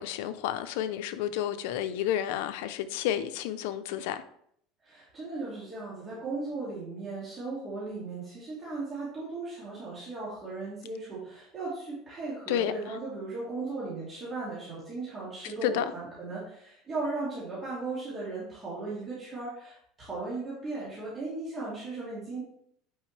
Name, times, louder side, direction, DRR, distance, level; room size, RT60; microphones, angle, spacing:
voice 1, 0.0-4.2 12.5-12.7 15.6-15.8, left 11 dB, 80° left, 0.6 m, -30 dB
voice 2, 4.8-22.4, right 3 dB, 25° right, 2.5 m, -37 dB
8.8 x 5.3 x 3.3 m
cardioid pair, 145°, 0 cm